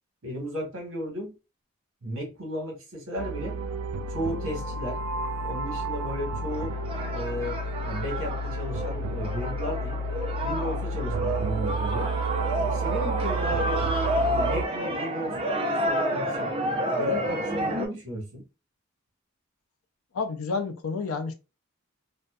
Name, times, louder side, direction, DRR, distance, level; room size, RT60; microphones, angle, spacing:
voice 1, 0.2-1.3 2.0-3.6 4.1-5.0 5.4-6.8 7.1-10.0 10.4-12.1 12.6-13.8 14.2-16.5 17.0-18.4, equal, 65° right, 1.2 m, -34 dB
sound 1, 3.2-14.7, right 2 dB, 90° right, 0.3 m, -31 dB
sound 2, 6.5-17.9, equal, 25° right, 0.4 m, -30 dB
voice 2, 20.1-21.3, left 4 dB, 85° left, 0.5 m, -30 dB
2.6 x 2.1 x 2.3 m
head